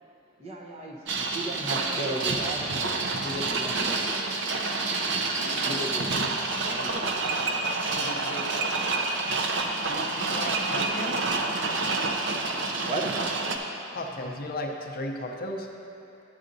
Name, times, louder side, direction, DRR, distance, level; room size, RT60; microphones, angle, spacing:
voice 1, 0.4-2.6 3.2-4.3 5.6-6.3 6.6-7.2 12.8-13.0, right 1 dB, 30° right, -1 dB, 0.8 m, -35 dB
sound 1, 1.1-13.6, right 3 dB, 65° right, 0.6 m, -28 dB
voice 2, 5.3-5.9 6.1-6.5 7.9-8.9 9.9-11.3 13.9-15.7, left 1 dB, 50° left, 2 dB, 0.6 m, -36 dB
11.0 x 7.9 x 2.6 m, 2.8 s
head